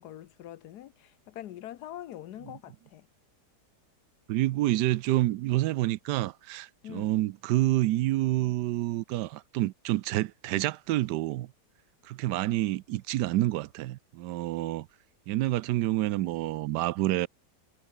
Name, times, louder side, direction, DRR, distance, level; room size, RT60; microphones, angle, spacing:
voice 1, 0.0-3.1 6.8-7.1, left 12 dB, 75° left, 1.3 m, -44 dB
voice 2, 4.3-11.5 12.0-14.9 15.3-17.3, right 16 dB, 85° right, 1.2 m, -28 dB
omnidirectional pair, 1.8 m